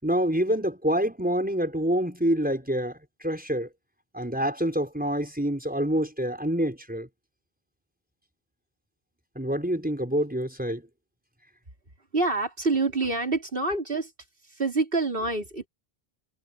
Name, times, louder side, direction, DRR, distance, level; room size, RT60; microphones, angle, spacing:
voice 1, 0.0-3.7 4.1-7.1 9.4-10.8, equal, 10° right, 5.7 m, -27 dB
voice 2, 12.1-14.1 14.4-15.7, right 3 dB, 65° right, 4.4 m, -26 dB
omnidirectional pair, 1.0 m